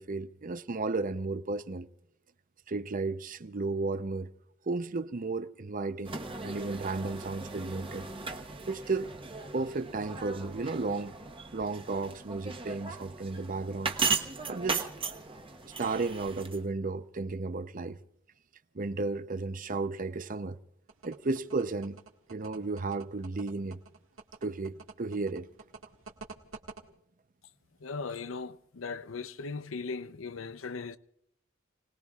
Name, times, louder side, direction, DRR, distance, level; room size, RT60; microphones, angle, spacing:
voice 1, 0.0-1.9 2.7-4.3 4.7-6.2 6.4-8.1 8.7-9.1 9.5-11.1 11.5-13.9 14.5-14.9 15.6-18.0 18.7-20.6 21.0-22.0 22.3-23.8 24.4-25.5, right 3 dB, 45° right, 0.7 m, -33 dB
sound 1, 6.0-16.6, right 4 dB, 25° right, 1.1 m, -37 dB
sound 2, 20.9-26.8, right 4 dB, 90° right, 1.8 m, -47 dB
voice 2, 27.8-31.0, left 4 dB, 75° left, 0.7 m, -38 dB
30.0 x 19.5 x 2.4 m
head